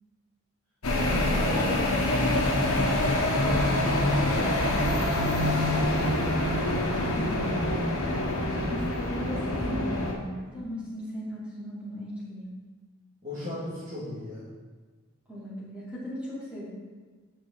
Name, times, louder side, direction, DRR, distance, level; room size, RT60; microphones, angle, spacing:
sound 1, 0.8-10.1, left 1 dB, 90° left, 1.4 m, -26 dB
voice 1, 1.0-1.8 3.3-7.6 13.2-14.5, left 1 dB, 35° right, -12 dB, 2.2 m, -37 dB
voice 2, 7.0-7.8 8.5-12.5 15.3-16.7, equal, 5° right, -9 dB, 2.5 m, -37 dB
10.0 x 5.4 x 4.0 m, 1.4 s
head